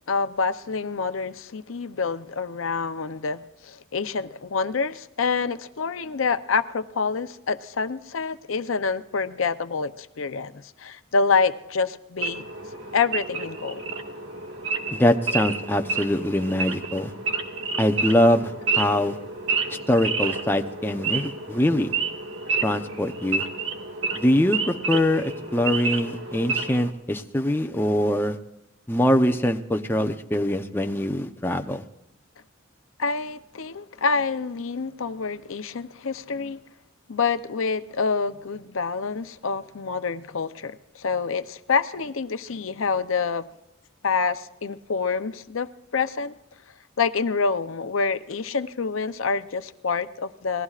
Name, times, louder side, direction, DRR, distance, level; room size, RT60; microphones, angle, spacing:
voice 1, 0.1-12.4 12.9-13.8 33.0-36.6 37.1-43.4 44.0-46.3 47.0-50.6, left 5 dB, 80° left, 0.7 m, -27 dB
Wild animals / Idling, 12.2-26.9, right 4 dB, 65° right, 1.9 m, -30 dB
voice 2, 14.9-17.1 17.8-19.2 19.9-21.9 22.6-23.4 24.1-28.4 28.9-31.8, left 1 dB, 10° left, 0.7 m, -23 dB
27.5 x 19.5 x 2.5 m
head